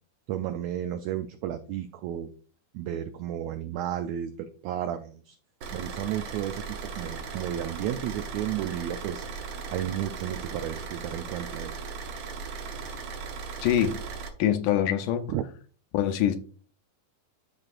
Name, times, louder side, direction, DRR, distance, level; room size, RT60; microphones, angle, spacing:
voice 1, 0.3-2.3 2.7-5.4 5.7-9.5 9.7-11.9 15.3-15.4, right 11 dB, 85° right, 1.6 m, -33 dB
Car / Idling, 5.6-14.3, right 5 dB, 65° right, 1.7 m, -38 dB
voice 2, 13.6-14.0 14.4-15.3 15.9-16.4, left 10 dB, 80° left, 2.1 m, -24 dB
12.5 x 4.3 x 2.4 m
omnidirectional pair, 3.7 m